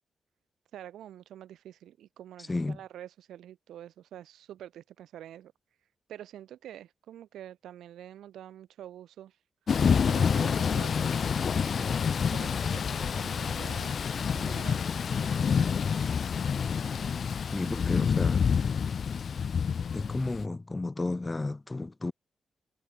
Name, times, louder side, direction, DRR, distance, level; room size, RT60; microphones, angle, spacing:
voice 1, 0.7-5.5 6.1-9.4 10.0-11.2 11.8-14.0 14.3-14.8 15.5-15.8, right 11 dB, 85° right, 6.6 m, -46 dB
Thunder / Rain, 9.7-20.4, left 6 dB, 65° left, 1.7 m, -28 dB
voice 2, 17.5-18.5 19.9-22.1, left 2 dB, 30° left, 4.3 m, -32 dB
supercardioid pair, 45°, 0 cm